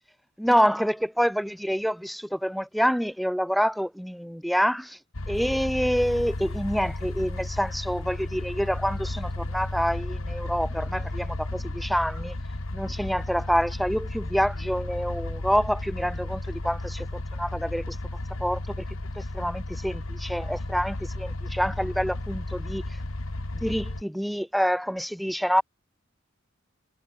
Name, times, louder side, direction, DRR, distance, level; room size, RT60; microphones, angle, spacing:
voice 1, 0.4-5.0 5.3-12.3 12.7-17.1 17.3-18.0 18.4-18.6 19.2-22.8 23.5-25.6, equal, ahead, 1.0 m, -27 dB
sound 1, 5.1-24.0, left 1 dB, 75° left, 1.7 m, -33 dB
head